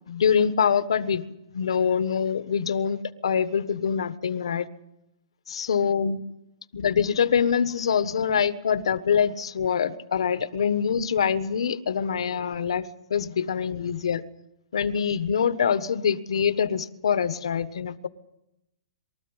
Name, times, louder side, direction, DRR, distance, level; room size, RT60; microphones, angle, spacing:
voice 1, 0.1-1.2 1.5-4.7 5.5-6.2 6.7-14.2 14.7-18.1, left 7 dB, 65° left, 13 dB, 1.4 m, -24 dB
24.0 x 14.0 x 9.9 m, 0.85 s
hypercardioid pair, 180°, 3 cm